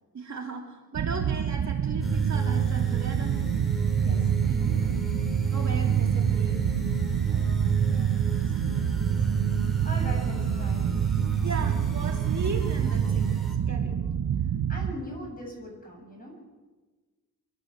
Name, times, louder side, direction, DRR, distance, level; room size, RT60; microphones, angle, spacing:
voice 1, 0.1-3.4 5.5-6.6 11.4-13.3 13.6-14.1, right 4 dB, 50° right, 0 dB, 2.9 m, -36 dB
sound 1, 0.9-14.9, right 8 dB, 80° right, 1.0 m, -28 dB
sound 2, 2.0-13.5, right 7 dB, ahead, 4.1 m, -29 dB
voice 2, 3.9-4.9 7.3-10.9 14.3-16.4, equal, 25° left, -1 dB, 7.5 m, -42 dB
24.0 x 13.5 x 8.1 m, 1.3 s
wide cardioid pair, 180°, 35 cm